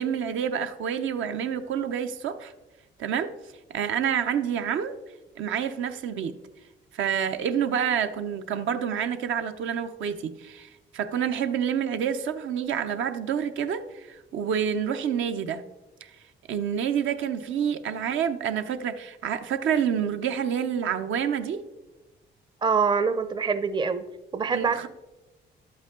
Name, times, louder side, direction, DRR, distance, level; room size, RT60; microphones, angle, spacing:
voice 1, 0.0-2.5 3.0-3.3 3.7-5.0 5.4-6.4 6.9-15.6 16.0-16.1 16.5-21.6 24.5-24.9, right 8 dB, 75° right, 8 dB, 0.7 m, -28 dB
voice 2, 22.6-24.0 24.3-24.9, right 5 dB, 25° right, 12 dB, 0.5 m, -25 dB
11.5 x 8.0 x 3.7 m, 1.1 s
cardioid pair, 90°, 20 cm